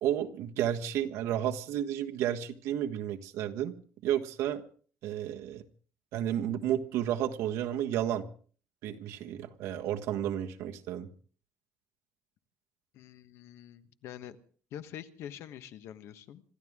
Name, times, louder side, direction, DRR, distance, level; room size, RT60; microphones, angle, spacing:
voice 1, 0.0-3.7 4.0-4.6 5.0-5.6 6.1-8.3 8.8-11.1, right 11 dB, 75° right, 5 dB, 1.5 m, -32 dB
voice 2, 12.9-14.4 14.7-16.4, left 10 dB, 60° left, 11 dB, 1.3 m, -45 dB
26.0 x 14.5 x 3.7 m, 0.43 s
cardioid pair, 160°, 5 cm